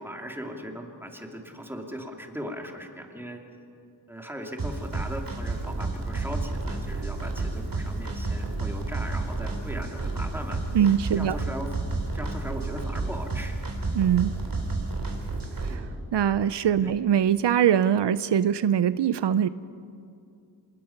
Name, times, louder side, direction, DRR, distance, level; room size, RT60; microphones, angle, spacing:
voice 1, 0.0-3.4 4.1-11.7 12.1-13.6 15.7-15.9 16.8-17.0, equal, 5° right, 2 dB, 2.5 m, -38 dB
sound 1, 4.6-15.8, right 3 dB, 55° right, 3.6 m, -31 dB
voice 2, 10.7-11.4 13.9-14.3 15.6-15.8 16.1-19.5, right 9 dB, 80° right, 15 dB, 0.6 m, -22 dB
26.0 x 20.5 x 5.8 m, 2.5 s
wide cardioid pair, 90°, 41 cm